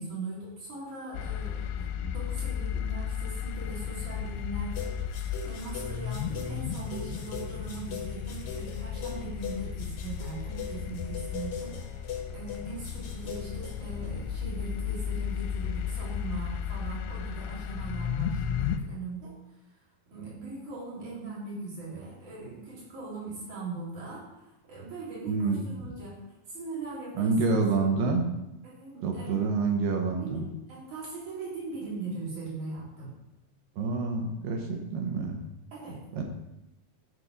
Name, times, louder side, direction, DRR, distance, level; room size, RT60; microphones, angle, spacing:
voice 1, 0.0-12.0 12.3-19.4 20.1-24.3 24.7-27.3 28.6-29.3 30.2-33.2 35.7-36.0, right 3 dB, 50° right, -7 dB, 4.9 m, -40 dB
sound 1, 1.1-18.8, left 8 dB, 90° left, 2.8 m, -34 dB
sound 2, 4.7-14.1, left 6 dB, 70° left, 1.3 m, -41 dB
voice 2, 25.3-25.7 27.2-28.3 29.0-30.5 33.8-35.4 36.1-36.2, right 4 dB, 70° right, 2 dB, 2.5 m, -27 dB
12.5 x 4.3 x 5.1 m, 0.92 s
omnidirectional pair, 4.7 m